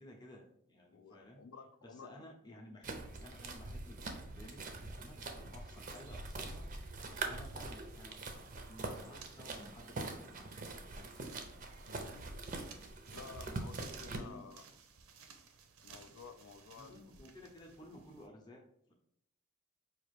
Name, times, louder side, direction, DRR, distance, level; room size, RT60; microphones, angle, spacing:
voice 1, 0.0-1.4 1.8-6.7 7.1-11.1 14.2-14.5 16.8-18.9, left 1 dB, 20° left, 0 dB, 0.6 m, -55 dB
voice 2, 0.9-2.1 11.9-12.3 13.1-14.6 15.8-17.2, left 5 dB, 75° left, 7 dB, 0.3 m, -53 dB
sound 1, 2.8-14.2, right 3 dB, 40° right, 0.5 m, -44 dB
sound 2, 7.5-18.3, right 6 dB, 85° right, 0.6 m, -59 dB
5.0 x 2.5 x 3.2 m, 0.72 s
head